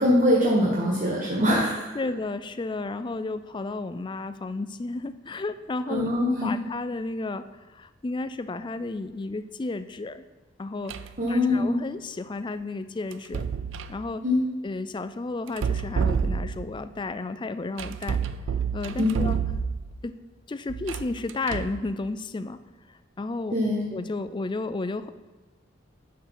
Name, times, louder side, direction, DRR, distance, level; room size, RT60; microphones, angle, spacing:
voice 1, 0.0-1.9 5.9-6.5 11.2-11.8 14.2-14.4 19.0-19.2 23.5-23.9, left 1 dB, 40° right, -4 dB, 1.3 m, -23 dB
voice 2, 1.9-6.1 6.4-7.4 7.8-10.2 10.6-11.0 11.3-13.5 13.9-14.2 14.6-18.2 18.7-19.4 20.0-20.1 20.5-22.6 23.2-23.6 23.9-25.1, left 3 dB, 25° left, 12 dB, 0.4 m, -32 dB
sound 1, 10.9-11.2 13.1-14.0 15.5-16.8 17.8-20.0 20.7-21.8, right 6 dB, 75° right, 0.4 m, -29 dB
10.5 x 4.7 x 5.8 m, 1.3 s
head